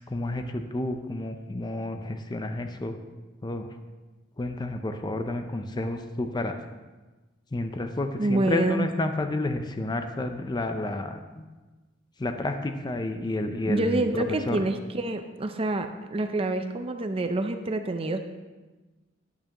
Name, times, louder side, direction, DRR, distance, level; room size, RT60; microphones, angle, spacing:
voice 1, 0.0-3.0 3.4-3.7 4.4-6.5 7.5-11.4 12.2-14.7, left 2 dB, 20° left, 7 dB, 0.5 m, -30 dB
voice 2, 8.2-8.9 13.7-18.2, right 2 dB, 30° right, 7 dB, 0.5 m, -27 dB
11.0 x 8.6 x 2.9 m, 1.2 s
head